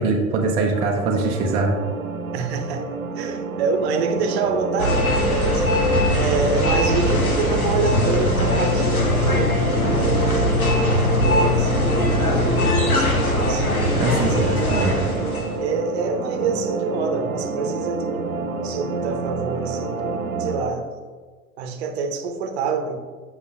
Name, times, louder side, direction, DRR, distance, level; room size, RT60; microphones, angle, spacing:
voice 1, 0.0-1.8 14.0-15.0, right 3 dB, 15° right, 0 dB, 0.4 m, -22 dB
sound 1, 0.7-20.7, right 3 dB, 80° right, 0.8 m, -27 dB
voice 2, 2.3-2.9 3.2-13.7 14.1-15.3 15.6-20.8 21.6-23.0, right 4 dB, 50° right, 6 dB, 0.8 m, -27 dB
sound 2, 4.8-15.6, left 1 dB, 85° left, 0.9 m, -21 dB
8.1 x 5.5 x 2.4 m, 1.5 s
figure-of-eight pair, 95°, 42 cm